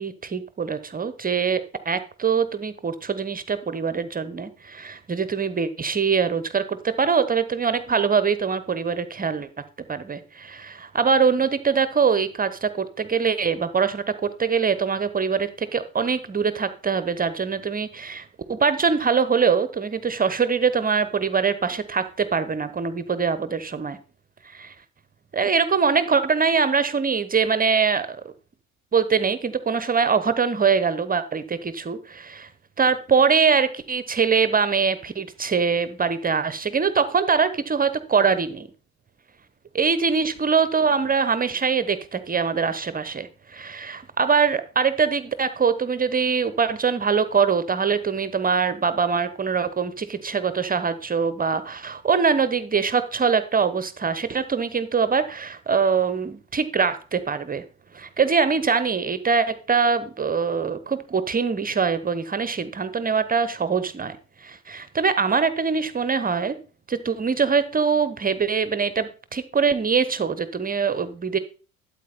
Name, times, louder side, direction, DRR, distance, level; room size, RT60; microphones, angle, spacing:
voice 1, 0.0-9.5 9.9-24.0 24.4-24.7 25.3-28.2 28.9-32.5 32.8-38.7 39.7-57.6 57.9-66.6 66.9-71.4, right 5 dB, 20° right, 13 dB, 0.9 m, -23 dB
12.5 x 8.5 x 4.1 m, 0.37 s
figure-of-eight pair, 65°, 42 cm